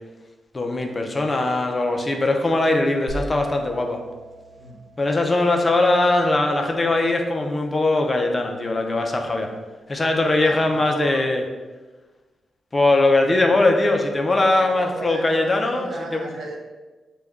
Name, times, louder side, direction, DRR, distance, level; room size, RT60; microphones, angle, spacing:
voice 1, 0.5-4.0 5.0-9.5 9.9-11.4 12.7-16.3, left 2 dB, 25° left, 2 dB, 0.5 m, -20 dB
sound 1, 3.1-6.9, right 2 dB, 60° right, 1.1 m, -39 dB
voice 2, 10.4-11.3 14.5-16.6, right 2 dB, 85° right, 0 dB, 0.9 m, -35 dB
6.4 x 2.3 x 3.5 m, 1.2 s
wide cardioid pair, 125°, 0 cm